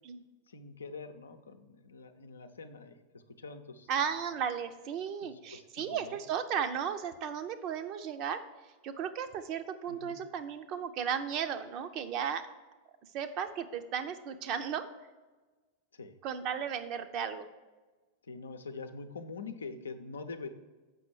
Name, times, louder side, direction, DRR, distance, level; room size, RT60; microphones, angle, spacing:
voice 1, 0.5-3.9 5.2-6.2 9.9-10.2 15.9-16.2 18.3-20.5, left 4 dB, 70° left, 8 dB, 0.7 m, -45 dB
voice 2, 3.9-8.4 8.8-12.5 13.1-14.9 16.2-17.5, right 7 dB, 40° right, 9 dB, 0.7 m, -35 dB
7.7 x 5.9 x 4.8 m, 1.3 s
figure-of-eight pair, 90°, 0 cm